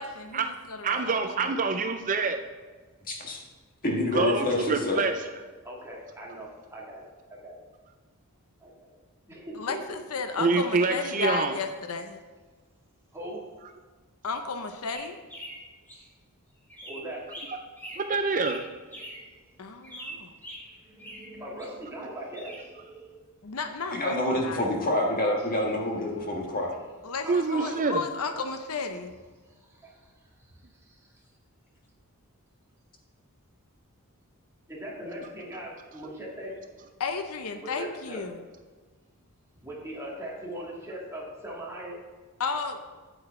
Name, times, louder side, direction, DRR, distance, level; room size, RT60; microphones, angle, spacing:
voice 1, 0.0-1.5 9.6-12.2 14.2-15.2 19.6-20.3 23.4-24.7 27.0-29.1 37.0-38.4 42.4-42.8, left 4 dB, 70° left, 7 dB, 0.7 m, -33 dB
voice 2, 0.8-2.4 4.1-5.1 10.4-11.5 18.0-18.7 27.2-28.0, right 4 dB, 35° right, 7 dB, 0.4 m, -26 dB
voice 3, 3.1-3.4 3.8-5.0 23.9-26.7, left 1 dB, 40° left, 0 dB, 1.6 m, -27 dB
voice 4, 5.6-7.6 8.6-8.9 9.3-9.8 13.1-13.5 16.8-17.2 19.0-19.1 20.8-23.2 25.4-25.5 27.2-27.8 29.5-30.1 30.4-30.5 30.9-31.0 34.7-36.6 37.6-38.2 39.6-42.0, right 1 dB, 10° right, -5 dB, 2.3 m, -40 dB
sound 1, 14.9-16.0 16.7-19.3 19.8-21.7 22.3-22.7, equal, 10° left, 1.7 m, -43 dB
8.8 x 8.0 x 3.7 m, 1.4 s
head